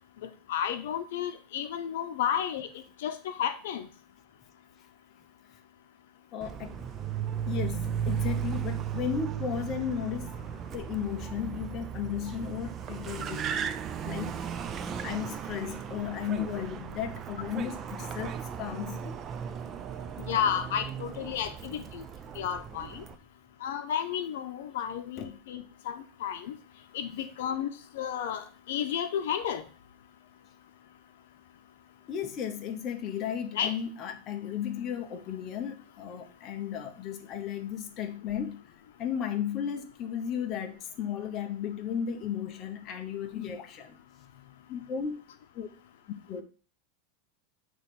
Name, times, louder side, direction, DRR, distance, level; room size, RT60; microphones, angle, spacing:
voice 1, 0.5-2.7 3.0-3.8 20.3-22.0 22.4-23.0 23.6-26.5 26.9-28.4 28.7-29.6 33.5-33.7, left 9 dB, 75° left, 8 dB, 0.7 m, -32 dB
voice 2, 6.3-6.8 7.5-10.3 10.7-13.5 14.0-14.4 15.0-19.2 25.2-25.4 32.1-38.6 39.0-44.0 44.7-45.1 45.5-45.7 46.3-46.4, left 8 dB, 30° left, 5 dB, 0.7 m, -34 dB
Car, 6.4-23.2, right 8 dB, 25° right, 0.4 m, -36 dB
8.1 x 3.1 x 4.2 m, 0.37 s
supercardioid pair, 165°, 0 cm